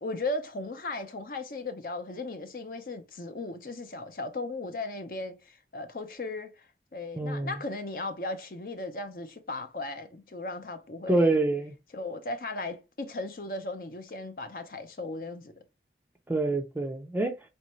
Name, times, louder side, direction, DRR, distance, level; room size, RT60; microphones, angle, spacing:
voice 1, 0.0-6.7 6.9-11.4 11.9-15.5, left 2 dB, 50° left, 0.6 m, -36 dB
voice 2, 7.1-7.5 11.1-11.7 16.3-17.4, right 2 dB, 10° right, 0.5 m, -26 dB
4.4 x 2.6 x 3.0 m
head